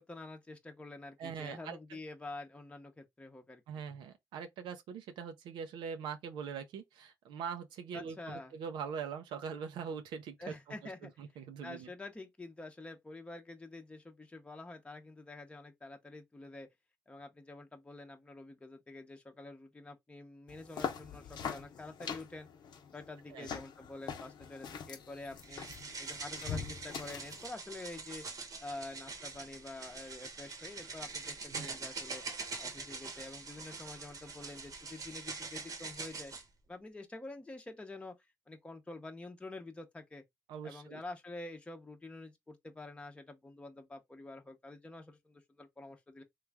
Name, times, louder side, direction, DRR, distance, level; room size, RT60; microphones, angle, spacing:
voice 1, 0.0-3.8 7.9-8.5 10.4-11.1 11.6-16.7 17.1-22.5 22.9-25.7 26.0-28.3 28.6-32.2 32.6-36.3 36.7-38.2 38.5-40.2 40.6-46.2, left 2 dB, 15° left, 0.7 m, -47 dB
voice 2, 1.2-2.0 3.7-10.5 11.0-11.9 23.3-23.5 31.5-31.8 40.5-41.0, right 6 dB, 85° right, 0.6 m, -42 dB
sound 1, 20.5-27.5, left 7 dB, 70° left, 0.7 m, -43 dB
sound 2, 25.4-36.4, right 4 dB, 45° right, 0.9 m, -44 dB
3.1 x 2.4 x 3.3 m
cardioid pair, 90°, 8 cm